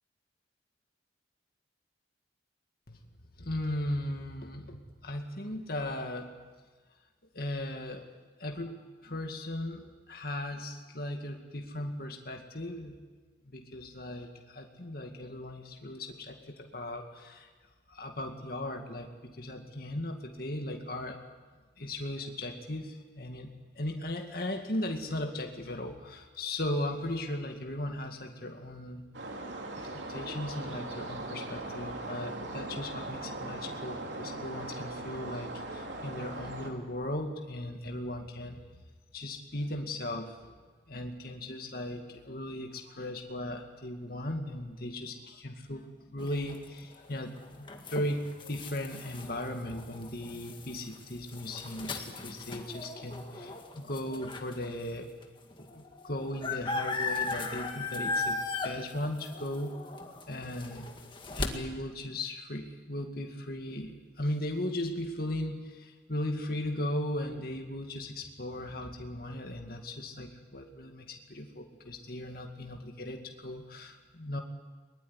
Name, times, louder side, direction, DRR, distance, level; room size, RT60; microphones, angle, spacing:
voice 1, 3.4-6.3 7.3-8.1 8.4-12.9 13.5-17.5 17.9-21.2 21.8-23.5 23.8-29.0 30.1-38.6 39.1-40.5 40.9-55.1 55.6-59.7 60.3-60.9 61.3-74.4, left 1 dB, 50° left, 3 dB, 2.2 m, -37 dB
sound 1, 29.1-36.7, right 2 dB, 75° right, 3.2 m, -39 dB
sound 2, 46.2-54.7 55.2-55.3 55.5-61.5, left 3 dB, 25° left, 2.0 m, -37 dB
22.5 x 20.5 x 9.9 m, 1.4 s
head